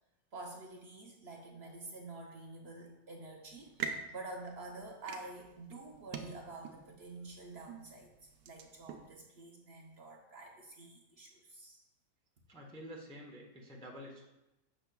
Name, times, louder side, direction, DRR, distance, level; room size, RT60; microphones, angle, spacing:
voice 1, 0.3-8.1 8.4-11.8, right 2 dB, 50° right, 0 dB, 0.9 m, -48 dB
sound 1, 3.4-9.1, right 6 dB, 80° right, 1.1 m, -46 dB
voice 2, 12.5-14.3, equal, 5° left, -3 dB, 0.5 m, -49 dB
7.1 x 6.2 x 2.2 m, 0.93 s
omnidirectional pair, 1.6 m